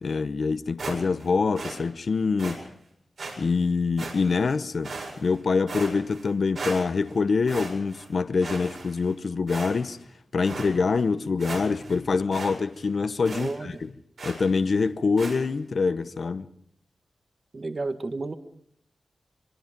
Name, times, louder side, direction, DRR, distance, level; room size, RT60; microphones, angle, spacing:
voice 1, 0.0-2.6 3.4-10.0 10.3-13.9 14.2-16.5, left 4 dB, 60° left, 0.8 m, -25 dB
sound 1, 0.8-1.3 1.6-1.8 2.4-2.6 3.2-3.4 4.0-4.4 4.8-5.4 5.7-6.3 6.6-7.1 7.5-8.1 8.4-9.1 9.5-10.0 10.4-10.7 11.1-11.2 11.4-12.0 12.3-12.5 12.8-12.9 13.2-13.5 14.2-14.5 15.2-15.4, right 3 dB, 70° right, 7.7 m, -37 dB
voice 2, 13.3-13.8 17.5-18.4, right 3 dB, 45° right, 1.7 m, -32 dB
26.0 x 23.0 x 5.2 m
wide cardioid pair, 115°, 0 cm